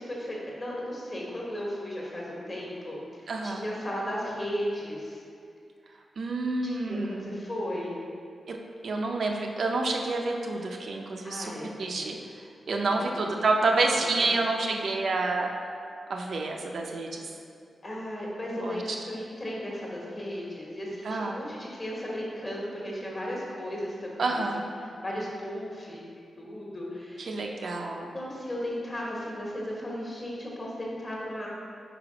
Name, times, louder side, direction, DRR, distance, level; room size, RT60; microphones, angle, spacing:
voice 1, 0.0-5.2 6.6-8.0 11.2-12.1 13.1-13.2 14.2-14.4 17.8-24.4 24.8-26.0 26.4-27.5 28.1-31.5, equal, 25° left, -4 dB, 1.2 m, -35 dB
voice 2, 3.3-3.7 6.2-7.4 8.5-8.6 8.8-12.2 12.7-15.5 16.1-17.3 18.6-19.3 21.0-21.4 24.2-24.7 27.2-28.2, right 3 dB, 60° right, 1 dB, 0.5 m, -29 dB
5.0 x 4.6 x 4.9 m, 2.3 s
wide cardioid pair, 155°, 0 cm